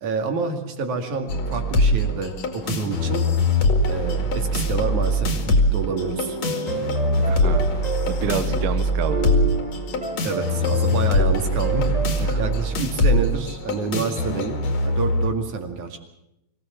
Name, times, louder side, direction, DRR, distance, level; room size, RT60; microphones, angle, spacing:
voice 1, 0.0-3.2 3.9-6.4 8.5-8.7 10.2-14.6 14.8-16.0, right 4 dB, 80° right, 4 dB, 3.7 m, -28 dB
sound 1, 1.3-15.3, left 1 dB, 60° left, 3.4 m, -22 dB
sound 2, 5.9-8.5 8.9-12.2, right 2 dB, 35° right, 0.6 m, -31 dB
voice 2, 7.3-7.7 8.1-9.2 12.2-12.4, right 7 dB, 55° right, 9 dB, 1.7 m, -28 dB
25.0 x 16.5 x 7.4 m, 0.84 s
omnidirectional pair, 3.4 m